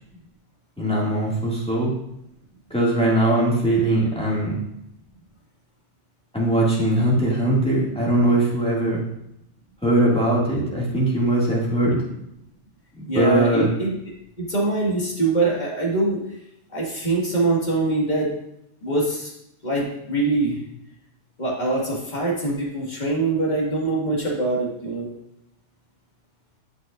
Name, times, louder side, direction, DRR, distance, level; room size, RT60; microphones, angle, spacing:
voice 1, 0.8-1.9 2.7-4.5 6.3-9.0 9.8-12.0 13.1-13.7, right 1 dB, 5° left, -5 dB, 2.1 m, -20 dB
voice 2, 13.1-13.9 14.4-16.2 16.7-18.3 18.8-19.3 19.6-20.6 21.4-25.1, right 2 dB, 35° left, -4 dB, 2.1 m, -23 dB
11.5 x 5.8 x 2.5 m, 0.79 s
omnidirectional pair, 1.3 m